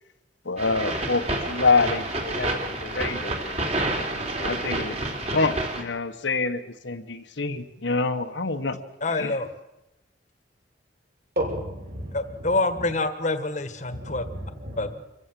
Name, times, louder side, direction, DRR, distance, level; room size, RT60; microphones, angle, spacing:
voice 1, 0.4-3.6 4.4-5.0 5.3-8.8 9.2-9.4, left 4 dB, 70° left, 7 dB, 1.3 m, -26 dB
sound 1, 0.6-5.8, right 2 dB, 35° right, 3.2 m, -29 dB
voice 2, 9.0-9.5 12.1-14.2 14.8-14.9, left 2 dB, 40° left, 10 dB, 1.5 m, -26 dB
voice 3, 11.4-12.5 13.9-14.9, right 1 dB, 55° right, 0 dB, 6.1 m, -33 dB
26.0 x 15.0 x 7.7 m, 0.97 s
head